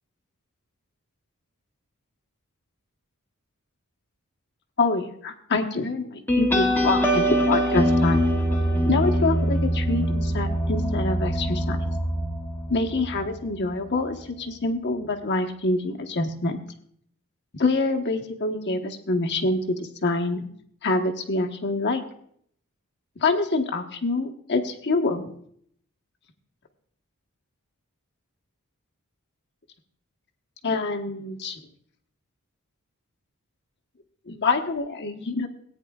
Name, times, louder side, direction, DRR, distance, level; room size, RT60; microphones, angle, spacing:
voice 1, 4.8-8.3 8.9-11.9 12.7-16.6 17.5-20.4 20.8-22.0 23.2-25.2 30.6-31.6 34.3-35.5, left 3 dB, 50° left, 3 dB, 1.1 m, -26 dB
sound 1, 6.3-13.4, equal, 10° left, 1.1 m, -23 dB
17.5 x 9.4 x 2.4 m, 0.65 s
head